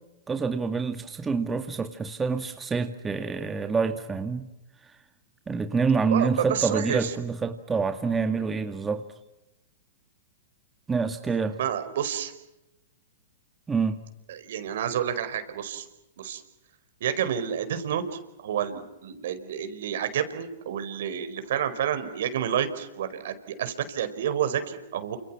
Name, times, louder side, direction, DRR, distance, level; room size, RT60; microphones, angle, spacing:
voice 1, 0.3-4.5 4.8-5.0 5.5-9.0 10.9-11.6 13.7-14.0, right 5 dB, 15° right, 6 dB, 2.0 m, -27 dB
voice 2, 6.1-7.1 11.6-12.3 14.3-15.8 16.2-16.4 17.0-25.2, right 9 dB, 70° right, 9 dB, 4.9 m, -29 dB
29.5 x 28.0 x 6.1 m, 0.93 s
hypercardioid pair, 125°, 0 cm